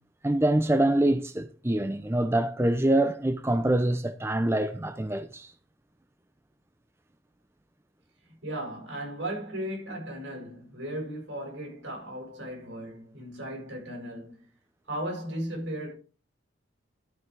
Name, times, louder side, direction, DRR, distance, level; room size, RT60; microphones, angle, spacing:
voice 1, 0.2-5.5, right 1 dB, 15° right, 0.5 m, -25 dB
voice 2, 8.3-14.4 14.9-15.9, right 1 dB, 80° right, 6.4 m, -36 dB
12.5 x 5.7 x 4.7 m
head